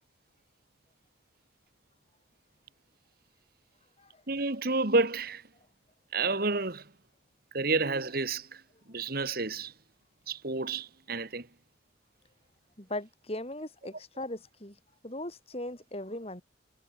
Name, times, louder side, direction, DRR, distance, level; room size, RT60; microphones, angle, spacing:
voice 1, 4.3-5.4 6.1-6.9 7.5-8.6 8.9-9.7 10.3-11.5, right 3 dB, 50° right, 1.9 m, -30 dB
voice 2, 12.8-14.8 15.0-16.4, left 1 dB, 30° left, 4.1 m, -38 dB
head